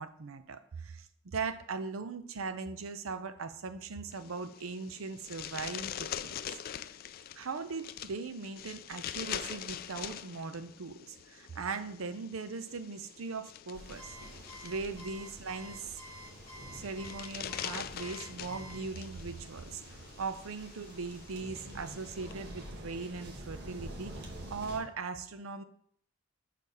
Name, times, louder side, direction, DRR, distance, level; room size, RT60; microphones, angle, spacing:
voice 1, 0.0-6.4 7.4-14.2 14.6-16.0 16.7-25.6, right 4 dB, 85° right, 10 dB, 0.6 m, -39 dB
sound 1, 4.1-22.3, left 10 dB, 45° left, 0.3 m, -44 dB
sound 2, 13.7-24.8, right 1 dB, 55° right, 1.5 m, -48 dB
Alarm, 14.0-18.8, equal, 15° left, 2.9 m, -50 dB
6.4 x 4.1 x 5.5 m, 0.64 s
head